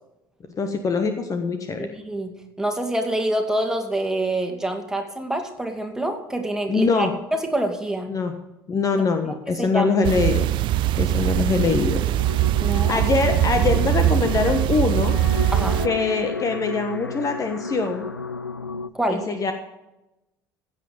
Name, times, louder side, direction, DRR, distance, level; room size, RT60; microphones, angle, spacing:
voice 1, 0.6-1.9 6.7-7.1 8.1-8.3 8.7-10.5 11.0-12.0 12.7-15.1 15.8-18.1 19.1-19.5, left 4 dB, 30° left, 7 dB, 1.4 m, -23 dB
voice 2, 1.8-2.3 2.6-8.1 9.6-9.9 12.6-13.0 15.5-15.8 18.9-19.2, right 1 dB, 5° right, 4 dB, 2.5 m, -26 dB
sound 1, 10.0-15.9, right 14 dB, 45° right, 0.5 m, -22 dB
sound 2, 12.2-18.9, left 4 dB, 90° left, 0.4 m, -32 dB
16.0 x 8.3 x 5.4 m, 0.96 s
figure-of-eight pair, 60°, 11 cm